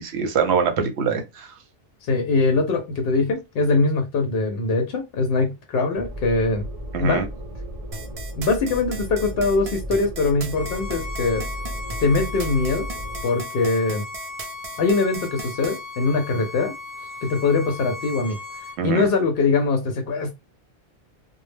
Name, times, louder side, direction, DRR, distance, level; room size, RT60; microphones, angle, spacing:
voice 1, 0.0-1.5 6.9-7.3 18.8-19.1, right 6 dB, 75° right, 0.9 m, -23 dB
voice 2, 2.1-6.7 7.0-7.2 8.4-11.5 12.0-12.9 13.2-14.0 14.8-16.7 17.2-18.4 18.8-20.3, left 3 dB, 65° left, 0.7 m, -22 dB
sound 1, 5.9-13.2, equal, 35° right, 0.8 m, -34 dB
sound 2, 7.9-15.8, right 3 dB, 60° right, 0.4 m, -37 dB
Bowed string instrument, 10.5-18.8, left 3 dB, 20° left, 0.7 m, -37 dB
2.1 x 2.0 x 3.2 m
omnidirectional pair, 1.1 m